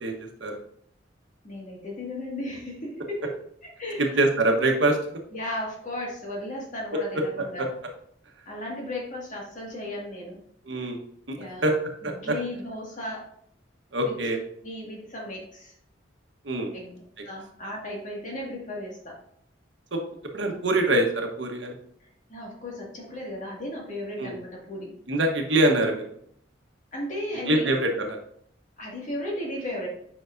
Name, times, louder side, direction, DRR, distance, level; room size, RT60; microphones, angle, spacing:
voice 1, 0.0-0.6 4.2-5.0 7.6-7.7 10.7-11.0 11.3-11.4 11.6-11.7 12.0-12.1 13.9-14.4 16.4-16.7 19.9-20.0 20.3-21.7 24.2-24.3 25.1-26.0 27.5-28.2, right 1 dB, 75° right, 2 dB, 1.2 m, -24 dB
voice 2, 1.4-4.2 5.3-7.6 8.5-10.4 11.4-11.7 12.0-13.3 14.0-14.1 14.6-15.7 16.7-17.0 17.2-19.2 22.3-24.9 26.9-27.7 28.8-29.9, left 1 dB, 45° left, -3 dB, 2.1 m, -35 dB
8.0 x 5.8 x 2.6 m, 0.68 s
head